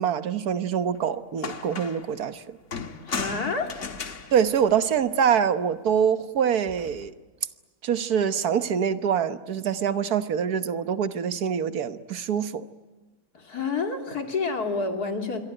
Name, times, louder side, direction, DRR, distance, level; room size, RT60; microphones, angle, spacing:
voice 1, 0.0-2.6 4.3-7.1 7.8-12.6, right 8 dB, 80° right, 12 dB, 1.6 m, -25 dB
sound 1, 1.0-1.1 1.4-2.1 2.7-5.4 6.7-7.1, left 5 dB, 55° left, 1.9 m, -36 dB
voice 2, 3.0-3.7 13.3-15.4, left 4 dB, 85° left, 5 dB, 3.4 m, -29 dB
27.0 x 23.0 x 9.0 m, 1.3 s
omnidirectional pair, 1.6 m